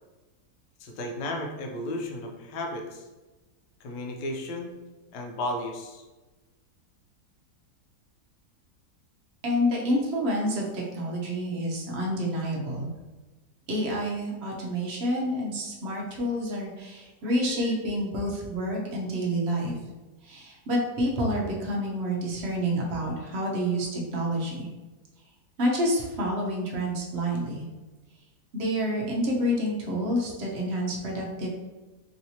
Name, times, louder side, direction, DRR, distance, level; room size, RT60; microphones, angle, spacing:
voice 1, 0.8-3.1 3.8-4.7 5.1-6.0, left 1 dB, 90° left, 2 dB, 1.2 m, -34 dB
voice 2, 9.4-12.9 13.7-19.8 20.2-24.7 25.6-27.7 28.5-31.5, equal, 60° right, -2 dB, 0.7 m, -28 dB
3.2 x 2.8 x 2.7 m, 1.2 s
omnidirectional pair, 1.8 m